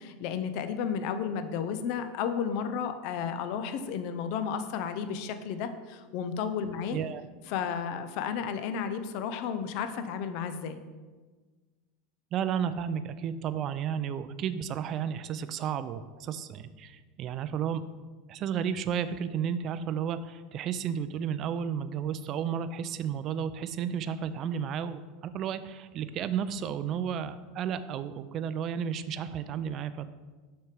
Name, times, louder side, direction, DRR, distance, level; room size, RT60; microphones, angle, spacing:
voice 1, 0.0-7.0 7.5-10.8, left 7 dB, 60° left, 9 dB, 0.5 m, -33 dB
voice 2, 12.3-17.8 18.3-30.1, right 8 dB, 45° right, 13 dB, 0.4 m, -32 dB
6.3 x 3.4 x 4.8 m, 1.3 s
hypercardioid pair, 85°, 0 cm